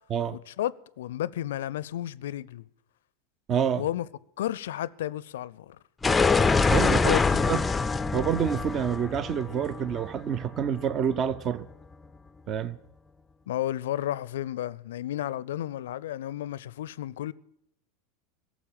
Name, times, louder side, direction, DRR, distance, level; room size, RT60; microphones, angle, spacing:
voice 1, 0.3-2.7 3.8-4.1 4.4-5.8 7.1-7.2 13.5-17.3, left 12 dB, 65° left, 0.5 m, -32 dB
voice 2, 3.5-3.8 6.7-7.2 7.5-7.6 8.1-11.7 12.5-12.8, right 8 dB, 35° right, 0.6 m, -27 dB
sound 1, 6.0-10.8, left 4 dB, 15° left, 0.4 m, -25 dB
17.5 x 7.3 x 8.8 m
figure-of-eight pair, 80°, 0 cm